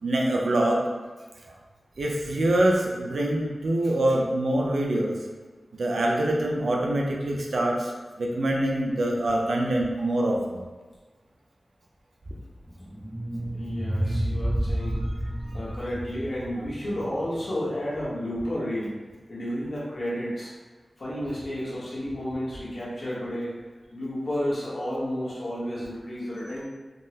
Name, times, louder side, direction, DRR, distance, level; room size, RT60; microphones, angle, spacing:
voice 1, 0.0-0.8 1.5-1.6 2.0-5.1 5.8-7.9 8.2-10.6 14.8-15.0 15.5-15.6, right 1 dB, 85° right, -1 dB, 0.5 m, -25 dB
sound 1, 12.7-17.8, right 1 dB, 15° right, 0.6 m, -30 dB
voice 2, 13.5-15.0 15.5-18.9 19.3-20.5 21.0-23.5 23.9-26.7, equal, 60° left, -7 dB, 1.0 m, -31 dB
3.6 x 2.0 x 2.7 m, 1.3 s
wide cardioid pair, 100°, 0 cm